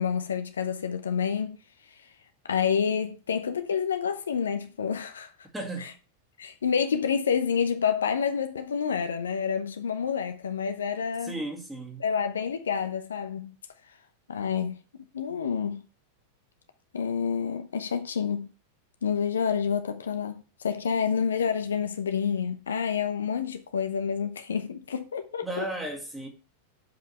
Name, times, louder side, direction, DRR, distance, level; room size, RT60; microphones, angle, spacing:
voice 1, 0.0-1.6 2.5-5.3 5.8-5.9 6.4-11.4 12.0-13.5 14.3-14.8 15.1-15.8 16.9-18.5 19.0-25.5, left 7 dB, 70° left, 0.8 m, -28 dB
voice 2, 5.5-5.9 11.2-12.0 25.4-26.3, right 2 dB, 5° right, 1.9 m, -35 dB
7.0 x 5.6 x 4.3 m
figure-of-eight pair, 90°, 0 cm